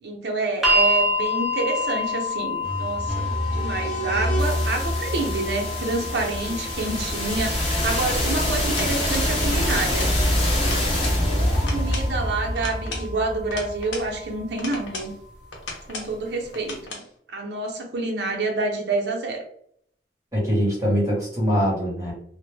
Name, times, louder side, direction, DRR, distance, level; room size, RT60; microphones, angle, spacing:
voice 1, 0.0-10.1 11.7-15.1 15.9-17.0 17.3-19.4, right 3 dB, 65° right, 1 dB, 0.6 m, -28 dB
sound 1, 0.6-12.7 13.8-13.9, left 1 dB, ahead, 0.5 m, -29 dB
sound 2, 2.6-14.5, equal, 30° left, 0.8 m, -25 dB
sound 3, 8.8-9.3 9.6-10.2 10.5-11.2 11.5-12.1 12.5-14.1 14.6-15.1 15.5-16.1 16.5-17.1, left 3 dB, 85° left, 0.7 m, -36 dB
voice 2, 20.3-22.1, equal, 15° right, -5 dB, 0.9 m, -23 dB
2.1 x 2.0 x 3.1 m, 0.67 s
head